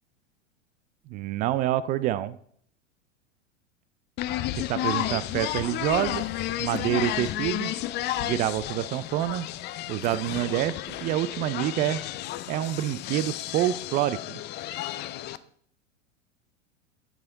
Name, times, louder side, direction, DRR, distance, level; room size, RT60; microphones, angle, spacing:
voice 1, 1.1-2.4 4.6-6.3 6.6-7.7 8.2-9.5 9.9-10.7 11.0-12.0 12.5-14.4, right 13 dB, 25° right, 16 dB, 0.3 m, -27 dB
sound 1, 4.2-15.4, left 14 dB, 30° left, 0.6 m, -32 dB
14.0 x 7.5 x 3.8 m, 0.63 s
figure-of-eight pair, 90°, 37 cm